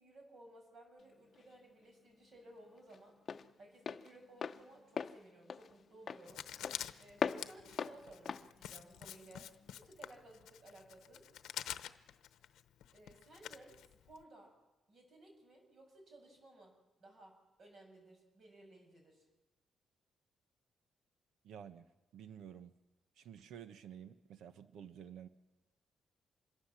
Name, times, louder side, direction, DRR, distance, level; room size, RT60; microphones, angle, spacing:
voice 1, 0.0-3.2 3.6-6.4 7.0-11.3 12.9-14.5 14.9-19.2, right 2 dB, 50° right, 2 dB, 7.7 m, -58 dB
Walk footsteps, 1.0-9.7, left 6 dB, 40° left, 0.8 m, -43 dB
Writing, 6.3-14.2, left 11 dB, 85° left, 0.9 m, -48 dB
voice 2, 21.4-21.8 22.1-22.7 23.2-25.3, right 9 dB, 85° right, 11 dB, 1.1 m, -51 dB
26.0 x 21.5 x 7.5 m, 1.1 s
cardioid pair, 135°, 0 cm